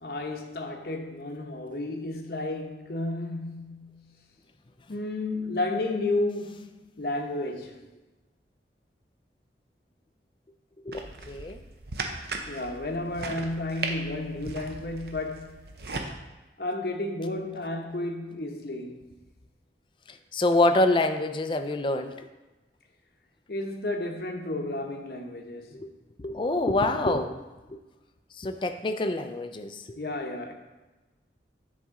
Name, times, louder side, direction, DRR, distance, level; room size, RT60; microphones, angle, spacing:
voice 1, 0.0-4.2 4.9-7.9 12.5-15.7 16.6-19.2 23.5-25.8 30.0-30.5, left 2 dB, 60° left, 0.8 m, -32 dB
voice 2, 10.9-11.6 20.3-22.2 25.7-25.9 26.2-27.4 27.7-27.8 28.4-30.0, left 2 dB, 30° left, 0.4 m, -26 dB
sound 1, 10.9-16.1, right 3 dB, 65° right, 0.7 m, -37 dB
9.9 x 4.2 x 3.6 m
head